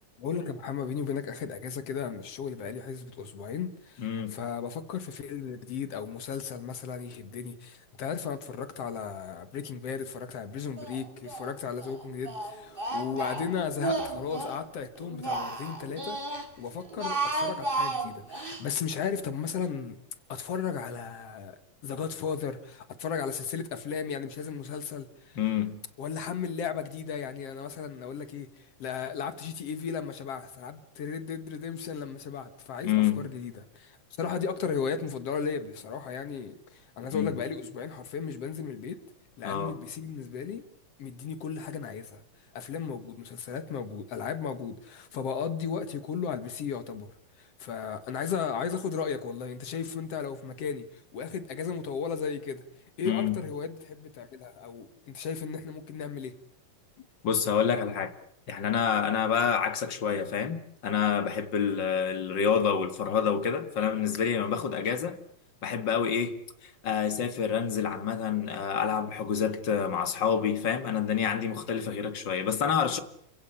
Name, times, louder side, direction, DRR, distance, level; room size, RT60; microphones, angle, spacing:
voice 1, 0.2-20.0 20.3-25.4 26.0-39.0 39.4-40.6 41.0-42.2 42.5-52.6 53.0-56.4, left 6 dB, 60° left, 2.4 m, -35 dB
voice 2, 4.0-4.4 25.4-25.8 32.8-33.3 37.1-37.4 39.4-39.7 53.1-53.4 57.2-58.1 58.5-65.2 65.6-66.3 66.6-73.0, left 7 dB, 45° left, 2.1 m, -28 dB
Speech, 10.8-11.5 11.8-14.6 15.0-16.5 16.8-18.6, right 2 dB, 20° right, 2.6 m, -33 dB
29.0 x 16.0 x 10.0 m
omnidirectional pair, 3.4 m